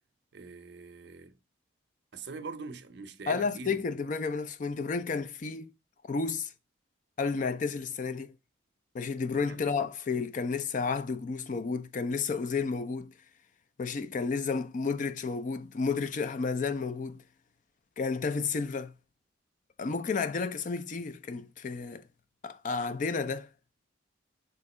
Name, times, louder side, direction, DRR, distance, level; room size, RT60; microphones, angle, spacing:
voice 1, 0.3-1.4 2.1-3.8 9.5-9.8, right 4 dB, 60° right, 0.5 m, -43 dB
voice 2, 3.3-5.7 6.1-6.5 7.2-8.4 8.9-13.1 13.8-17.2 18.0-18.9 19.8-22.0 22.4-23.5, left 4 dB, 40° left, 0.4 m, -31 dB
3.6 x 2.8 x 4.1 m
head